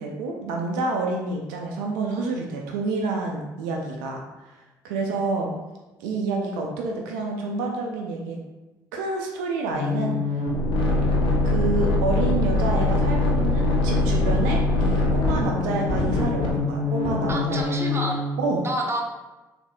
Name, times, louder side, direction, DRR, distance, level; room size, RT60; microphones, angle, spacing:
voice 1, 0.0-5.5 6.0-8.4 8.9-10.4 11.4-17.9 18.4-18.6, right 3 dB, 80° right, 1 dB, 0.4 m, -28 dB
sound 1, 9.7-18.3, left 2 dB, 60° left, 0.7 m, -23 dB
voice 2, 17.3-18.3 18.6-19.0, right 1 dB, 25° right, 1 dB, 0.6 m, -29 dB
4.0 x 2.5 x 2.2 m, 1.1 s
hypercardioid pair, 55°, 10 cm